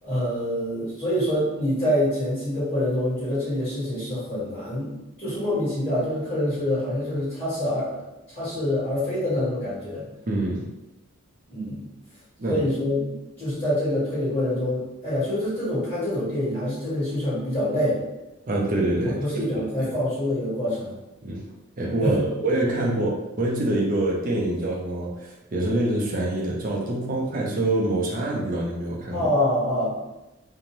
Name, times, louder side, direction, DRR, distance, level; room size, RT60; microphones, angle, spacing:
voice 1, 0.0-8.0 8.3-10.1 11.5-11.8 12.5-18.0 19.0-21.0 22.0-22.3 29.1-30.0, left 1 dB, 30° left, -13 dB, 1.3 m, -26 dB
voice 2, 10.3-10.7 12.4-12.6 18.5-19.2 19.5-19.9 21.2-21.4 21.8-29.3, right 1 dB, 40° right, -2 dB, 0.5 m, -25 dB
2.6 x 2.1 x 3.0 m, 0.98 s
head